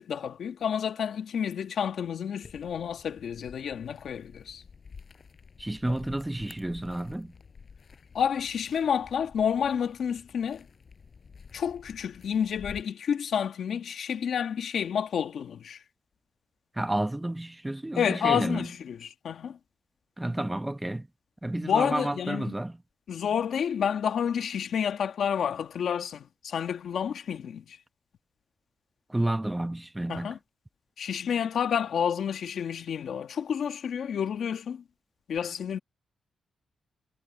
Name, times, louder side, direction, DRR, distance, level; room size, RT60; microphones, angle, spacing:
voice 1, 0.0-4.6 5.9-6.0 8.1-10.6 11.5-15.8 18.0-19.6 21.6-22.5 23.1-27.8 30.1-30.4 31.0-34.8 35.3-35.8, left 8 dB, 70° left, 1.7 m, -29 dB
sound 1, 2.4-12.8, left 5 dB, 45° left, 6.5 m, -50 dB
voice 2, 5.6-7.3 16.7-18.7 20.2-21.1 21.4-22.8 29.1-30.3, right 1 dB, 10° right, 0.9 m, -30 dB
cardioid pair, 105°, 0 cm